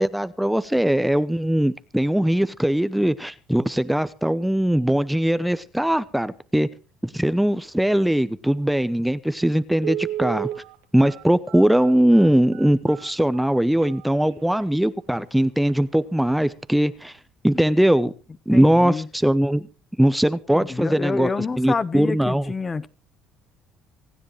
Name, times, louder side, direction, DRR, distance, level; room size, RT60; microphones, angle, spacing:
voice 1, 0.0-6.7 7.0-10.5 10.9-17.2 17.4-18.1 18.5-19.7 20.0-21.3 21.6-22.5, right 1 dB, 5° right, 0.7 m, -20 dB
Telephone, 9.0-9.1 9.8-14.6 15.2-15.3 15.6-15.8 16.2-16.5 16.8-16.9, right 13 dB, 90° right, 1.7 m, -34 dB
voice 2, 18.5-19.1 20.5-22.9, left 4 dB, 25° left, 0.9 m, -27 dB
26.0 x 10.0 x 3.1 m
supercardioid pair, 100°, 0 cm